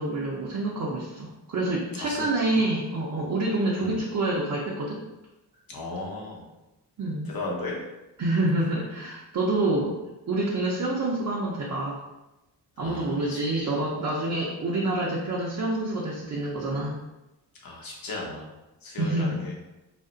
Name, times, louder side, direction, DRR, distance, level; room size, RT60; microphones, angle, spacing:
voice 1, 0.0-5.0 7.0-7.3 8.2-10.0 10.3-12.0 12.8-17.0 19.0-19.4, right 2 dB, 45° right, -4 dB, 0.6 m, -27 dB
voice 2, 5.7-6.5 7.2-7.9 12.8-13.4 17.6-18.5 18.8-19.5, left 2 dB, 55° left, -2 dB, 0.9 m, -35 dB
2.5 x 2.0 x 3.7 m, 0.98 s
cardioid pair, 70°, 42 cm